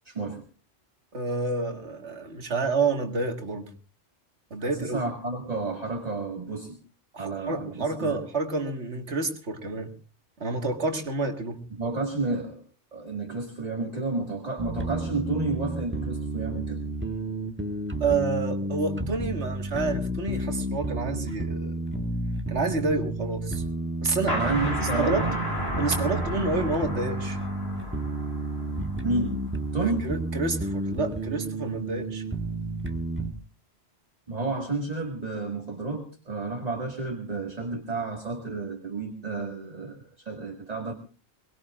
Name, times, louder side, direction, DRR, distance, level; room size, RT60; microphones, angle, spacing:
voice 1, 0.1-0.4 4.6-6.8 7.2-8.2 11.8-12.6 12.9-16.8 24.3-25.4 29.0-29.4 29.7-30.1 34.3-40.9, right 3 dB, 35° right, 1 dB, 2.1 m, -31 dB
voice 2, 1.1-3.7 4.5-5.0 7.1-9.9 10.4-11.6 18.0-21.8 22.5-23.6 24.0-25.3 25.8-27.4 29.8-32.2, right 3 dB, 85° right, 4 dB, 2.1 m, -29 dB
sound 1, 14.6-33.3, right 1 dB, 10° right, 1.5 m, -31 dB
sound 2, 24.3-29.7, equal, 65° left, 5.5 m, -33 dB
23.5 x 20.0 x 2.4 m, 0.35 s
omnidirectional pair, 1.1 m